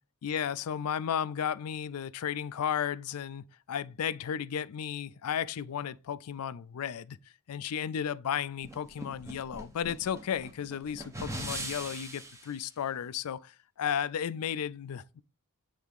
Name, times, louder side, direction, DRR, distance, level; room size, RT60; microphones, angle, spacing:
voice 1, 0.2-7.2 7.5-15.2, left 8 dB, 80° left, 0.4 m, -34 dB
sound 1, 8.6-12.5, right 1 dB, 15° right, 1.1 m, -41 dB
8.3 x 3.5 x 3.5 m
head